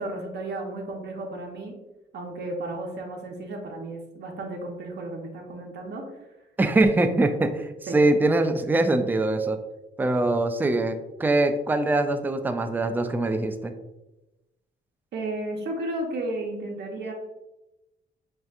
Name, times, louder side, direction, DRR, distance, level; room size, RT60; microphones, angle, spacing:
voice 1, 0.0-1.7 2.1-6.1 6.8-7.1 7.9-8.0 15.1-17.1, right 2 dB, 60° right, 1 dB, 0.8 m, -33 dB
voice 2, 6.6-9.6 10.0-13.7, right 2 dB, 10° right, 8 dB, 0.3 m, -23 dB
5.6 x 2.7 x 2.4 m, 0.98 s
cardioid pair, 90°, 20 cm